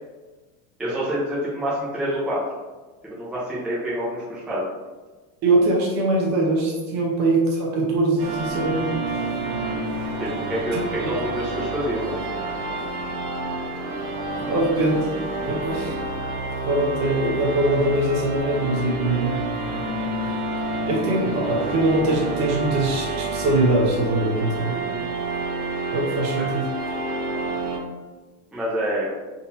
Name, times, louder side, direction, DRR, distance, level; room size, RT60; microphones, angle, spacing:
voice 1, 0.8-2.4 3.0-4.7 10.2-12.3 24.7-25.0 26.4-26.5 28.5-29.1, equal, ahead, -9 dB, 0.7 m, -27 dB
voice 2, 5.4-8.8 11.0-11.1 14.5-14.9 15.4-16.0 16.7-19.3 20.9-24.8 25.9-26.6, right 2 dB, 40° right, -2 dB, 1.0 m, -22 dB
sound 1, 8.2-27.8, right 2 dB, 85° right, 1.1 m, -29 dB
3.9 x 2.6 x 2.8 m, 1.2 s
supercardioid pair, 135°, 42 cm